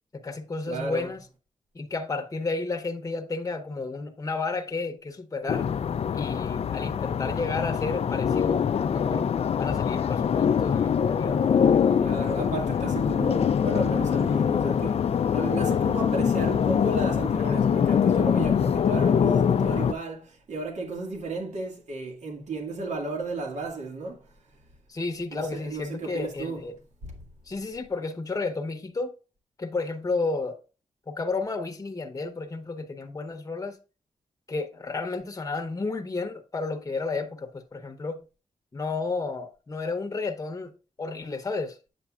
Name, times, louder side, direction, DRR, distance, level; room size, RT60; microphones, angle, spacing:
voice 1, 0.1-1.2 1.7-5.7 6.1-9.3 9.6-11.6 24.9-26.8 27.4-29.1 29.6-30.6 31.1-33.8 34.5-38.2 38.7-40.7 41.0-41.8, left 3 dB, 30° left, 0.9 m, -32 dB
voice 2, 0.7-1.1 12.0-15.0 15.3-24.3 25.3-26.6 27.0-27.2, right 3 dB, 75° right, 2.0 m, -33 dB
sound 1, 5.5-19.9, left 7 dB, 55° left, 0.4 m, -24 dB
8.2 x 7.7 x 2.5 m
wide cardioid pair, 95°, 12 cm